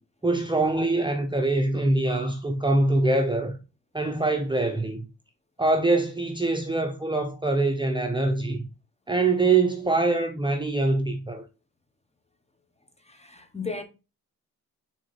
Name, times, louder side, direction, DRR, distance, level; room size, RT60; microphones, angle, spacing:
voice 1, 0.2-3.6 3.9-5.1 5.6-8.7 9.1-11.4, right 2 dB, 10° right, 0.9 m, -24 dB
voice 2, 13.1-13.8, left 4 dB, 15° left, 1.3 m, -35 dB
6.0 x 4.0 x 4.3 m
supercardioid pair, 60°, 42 cm